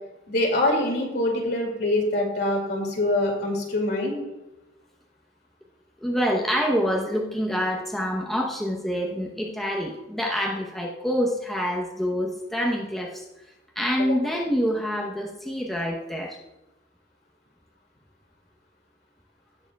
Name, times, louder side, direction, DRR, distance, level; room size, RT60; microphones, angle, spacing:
voice 1, 0.3-4.1 14.0-14.2, left 1 dB, 60° left, 0 dB, 2.3 m, -24 dB
voice 2, 6.0-13.2 13.8-16.4, equal, ahead, -1 dB, 0.8 m, -26 dB
17.0 x 7.0 x 2.3 m, 1.0 s
head